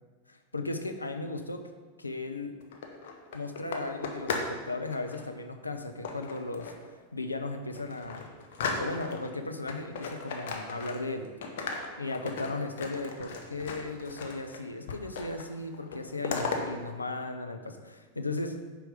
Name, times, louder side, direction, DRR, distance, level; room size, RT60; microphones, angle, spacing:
voice 1, 0.3-1.6 2.0-2.5 3.3-6.7 7.1-8.3 8.8-11.3 12.0-18.6, left 2 dB, 80° left, 6 dB, 0.4 m, -36 dB
sound 1, 2.6-4.6 4.9-5.2 6.0-6.9 7.3-7.4 7.7-9.3 9.7-11.2 11.4-14.6 14.9-15.5 15.7-16.6, left 4 dB, 55° left, 0.8 m, -36 dB
5.2 x 4.5 x 4.9 m, 1.4 s
figure-of-eight pair, 90°, 0 cm